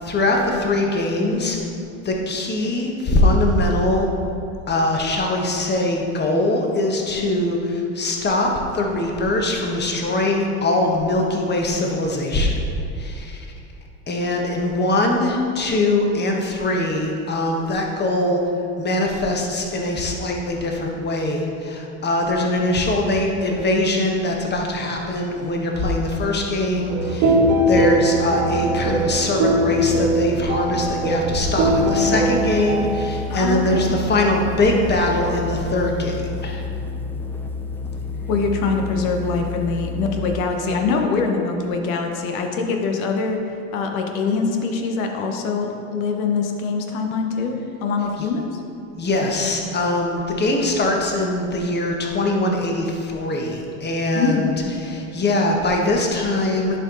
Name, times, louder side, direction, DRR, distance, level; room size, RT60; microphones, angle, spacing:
voice 1, 0.0-1.6 2.0-4.1 4.7-12.6 13.0-13.5 14.1-18.4 18.8-27.4 27.7-36.6 48.2-48.3 49.0-54.5 54.8-56.8, left 1 dB, 25° left, 1 dB, 1.3 m, -22 dB
sound 1, 26.9-33.0, right 1 dB, 60° right, 1.6 m, -20 dB
sound 2, 31.3-40.5, left 4 dB, 5° left, 0.4 m, -30 dB
voice 2, 33.3-33.9 38.3-43.4 43.7-48.5 54.1-54.5, left 4 dB, 70° left, 3 dB, 1.2 m, -23 dB
10.5 x 4.5 x 3.9 m, 2.6 s
hypercardioid pair, 90°, 42 cm